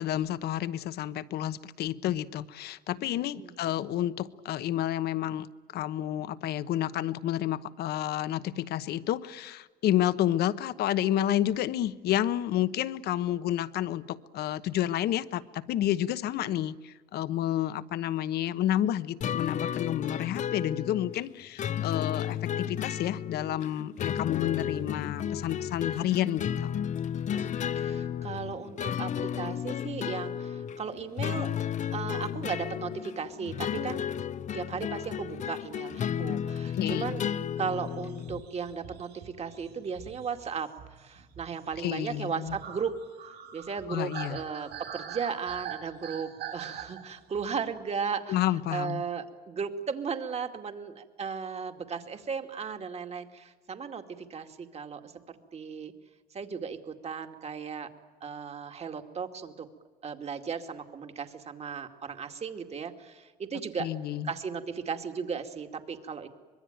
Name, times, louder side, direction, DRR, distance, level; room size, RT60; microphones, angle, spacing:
voice 1, 0.0-26.8 36.7-37.1 41.8-42.6 43.9-44.4 48.3-49.0 63.8-64.3, left 12 dB, 70° left, 14 dB, 1.1 m, -30 dB
sound 1, 19.2-38.4, left 9 dB, 45° left, 0.7 m, -33 dB
voice 2, 27.3-31.5 31.9-34.0 34.5-37.3 37.6-42.9 43.2-48.4 48.7-55.9 56.3-57.9 58.2-59.7 60.0-63.9 64.2-66.3, right 6 dB, 40° right, 6 dB, 2.4 m, -36 dB
sound 2, 37.6-47.6, right 8 dB, 75° right, 6.5 m, -44 dB
24.5 x 22.0 x 9.2 m, 1.4 s
cardioid pair, 110°, 17 cm